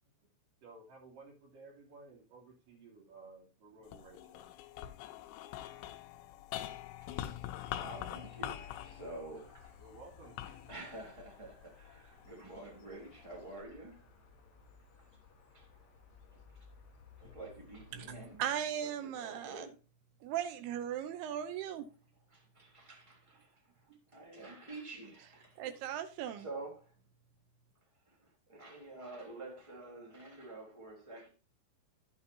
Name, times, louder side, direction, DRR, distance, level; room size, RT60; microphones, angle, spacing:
voice 1, 0.6-4.4 9.8-10.4 12.2-12.4, right 3 dB, 50° right, 4.6 m, -55 dB
sound 1, 3.8-12.3 12.9-13.6, left 12 dB, 85° left, 3.2 m, -45 dB
sound 2, 7.8-18.4, left 5 dB, 40° left, 2.5 m, -60 dB
voice 2, 7.8-9.8 10.4-13.9 15.0-15.1 15.5-15.7 16.3-16.4 17.2-18.4 18.8-19.8 22.3-25.6 25.9-26.0 26.4-26.9 28.1-31.3, right 2 dB, 10° right, 2.5 m, -49 dB
voice 3, 17.9-19.7 20.2-21.9 25.6-26.5, right 10 dB, 80° right, 2.4 m, -38 dB
11.0 x 8.8 x 2.8 m
omnidirectional pair, 5.5 m